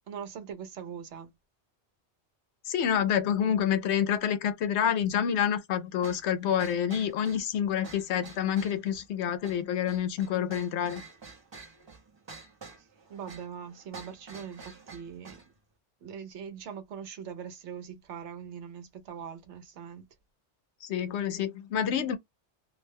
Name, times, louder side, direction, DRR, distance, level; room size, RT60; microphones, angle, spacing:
voice 1, 0.1-1.3 12.7-12.8 13.1-15.4 16.0-20.0, right 7 dB, 80° right, 1.0 m, -42 dB
voice 2, 2.7-11.0 20.8-22.2, left 9 dB, 75° left, 0.8 m, -28 dB
sound 1, 6.0-15.5, right 4 dB, 30° right, 0.6 m, -49 dB
2.5 x 2.1 x 3.3 m
omnidirectional pair, 1.2 m